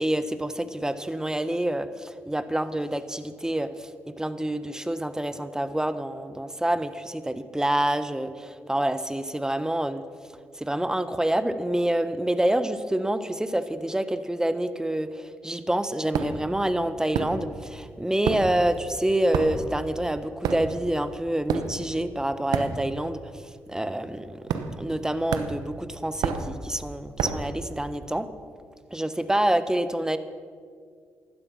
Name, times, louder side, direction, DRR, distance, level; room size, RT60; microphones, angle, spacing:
voice 1, 0.0-3.9 4.2-10.0 10.5-23.4 23.7-28.3 28.9-30.2, right 1 dB, 10° right, 12 dB, 1.2 m, -27 dB
sound 1, 16.1-16.5 17.1-17.8 18.0-23.2 23.4-23.7 24.5-25.0 25.3-27.6, right 6 dB, 70° right, 1.0 m, -30 dB
16.0 x 12.0 x 5.8 m, 2.1 s
hypercardioid pair, 45°, 7 cm